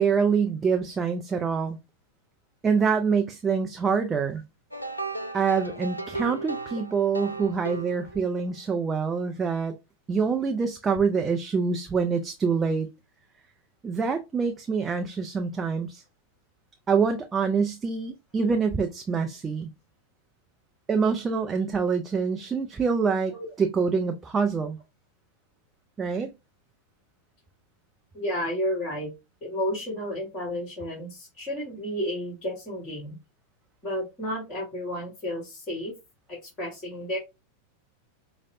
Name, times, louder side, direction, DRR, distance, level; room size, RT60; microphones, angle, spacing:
voice 1, 0.0-1.8 2.6-4.4 5.3-9.8 10.1-12.9 13.8-16.0 16.9-19.7 20.9-24.8 26.0-26.3, right 5 dB, 20° right, 0.4 m, -25 dB
sound 1, 4.7-8.5, right 3 dB, 90° left, 0.4 m, -35 dB
voice 2, 28.1-29.1 29.4-33.2 33.8-35.9 36.3-37.2, equal, 25° left, 1.7 m, -32 dB
5.0 x 2.0 x 2.6 m
figure-of-eight pair, 90°, 0 cm